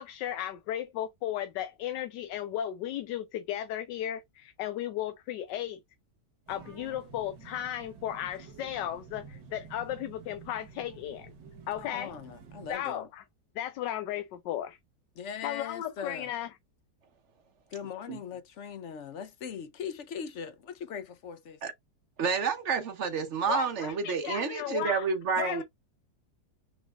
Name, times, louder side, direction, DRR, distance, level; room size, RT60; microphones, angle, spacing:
voice 1, 0.0-5.8 6.5-11.3 11.7-12.1 12.7-13.0 13.6-14.8 15.4-16.5 23.5-25.1 25.4-25.6, left 11 dB, 90° left, 1.3 m, -35 dB
sound 1, 6.5-12.7, right 5 dB, 80° right, 1.8 m, -50 dB
voice 2, 11.8-13.1 15.2-16.3 17.7-21.6, left 7 dB, 65° left, 0.7 m, -40 dB
voice 3, 22.2-25.6, right 5 dB, 55° right, 0.9 m, -29 dB
6.1 x 3.3 x 2.3 m
omnidirectional pair, 1.8 m